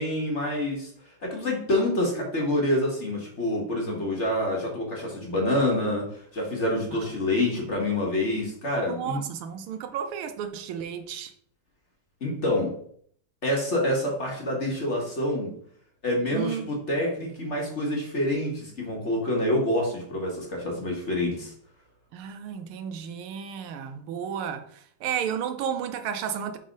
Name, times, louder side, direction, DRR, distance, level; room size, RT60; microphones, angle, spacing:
voice 1, 0.0-9.3 12.2-12.7 13.4-15.5 16.0-21.5, left 1 dB, 40° left, 1.4 m, -27 dB
voice 2, 8.9-11.3 16.3-16.7 22.1-26.6, right 8 dB, 85° right, 1.6 m, -32 dB
5.5 x 4.2 x 5.1 m
omnidirectional pair, 2.4 m